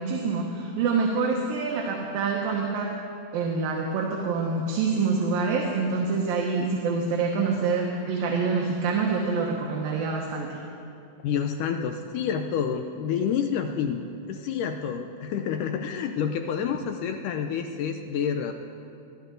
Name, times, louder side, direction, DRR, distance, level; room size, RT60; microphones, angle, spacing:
voice 1, 0.0-2.9 3.3-10.6, right 4 dB, 75° right, -1 dB, 2.9 m, -26 dB
voice 2, 11.2-18.5, left 7 dB, 80° left, 5 dB, 2.0 m, -28 dB
22.0 x 13.5 x 3.8 m, 2.5 s
omnidirectional pair, 4.1 m